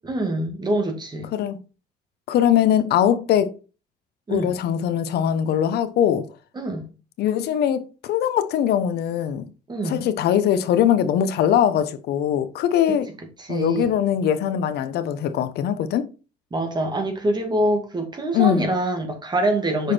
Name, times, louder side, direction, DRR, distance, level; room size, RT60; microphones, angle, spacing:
voice 1, 0.0-1.3 4.3-4.6 6.5-6.9 9.7-10.1 13.4-13.9 16.5-19.9, right 1 dB, 25° right, 2.0 m, -25 dB
voice 2, 2.3-3.5 4.3-6.3 7.2-9.4 9.8-13.1 13.5-16.1 18.3-18.7 19.8-19.9, left 9 dB, 70° left, 1.0 m, -21 dB
6.5 x 4.8 x 4.3 m
cardioid pair, 110°, 17 cm